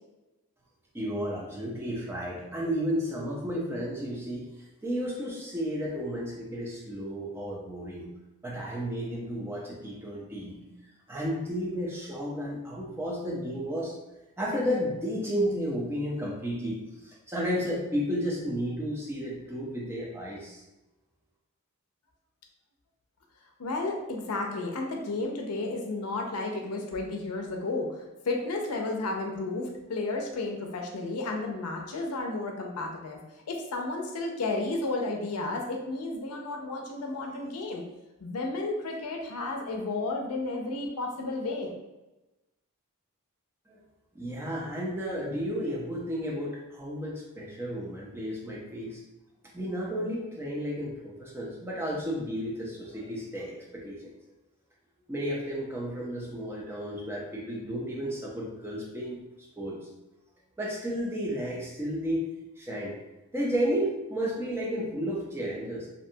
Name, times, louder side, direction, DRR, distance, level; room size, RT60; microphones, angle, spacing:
voice 1, 0.9-4.5 4.8-8.1 8.4-10.6 11.1-13.9 14.4-20.6 43.7-43.8 44.1-49.0 49.5-54.1 55.1-59.2 59.6-59.9 60.6-62.2 62.6-63.0 63.3-65.9, equal, 10° right, -4 dB, 0.4 m, -32 dB
voice 2, 23.6-33.2 33.5-37.8 38.2-41.7, left 2 dB, 90° left, 2 dB, 0.5 m, -32 dB
2.6 x 2.2 x 2.7 m, 1.0 s
head